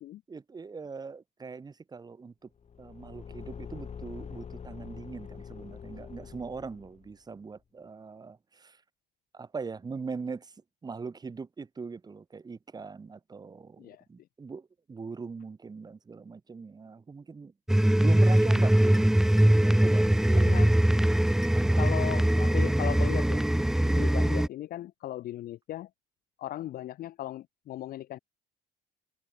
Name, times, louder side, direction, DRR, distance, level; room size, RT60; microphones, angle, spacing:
voice 1, 0.3-2.5 2.8-8.8 9.3-10.5 10.8-17.5 18.0-19.0 19.4-20.5 21.5-21.8 23.8-24.0, right 4 dB, 25° right, 1.4 m, -41 dB
Car / Engine, 2.6-7.1, left 7 dB, 40° left, 4.8 m, -44 dB
sound 1, 17.7-24.5, right 1 dB, 5° right, 0.4 m, -22 dB
voice 2, 20.4-20.7 21.8-23.5 23.9-25.9 26.4-28.2, left 14 dB, 60° left, 0.8 m, -37 dB
cardioid pair, 110°, 17 cm